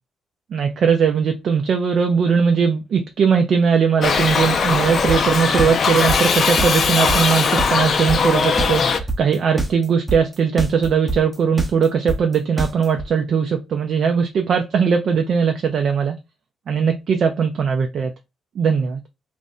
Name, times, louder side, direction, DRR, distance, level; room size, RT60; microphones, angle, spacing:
voice 1, 0.5-16.2 16.7-18.1 18.6-19.0, right 6 dB, 60° right, 0.4 m, -19 dB
Shout / Livestock farm animals working animals, 4.0-9.0, left 5 dB, 55° left, 0.5 m, -19 dB
sound 1, 5.1-13.0, right 3 dB, 20° right, 0.7 m, -24 dB
2.5 x 2.1 x 3.7 m
cardioid pair, 90°, 0 cm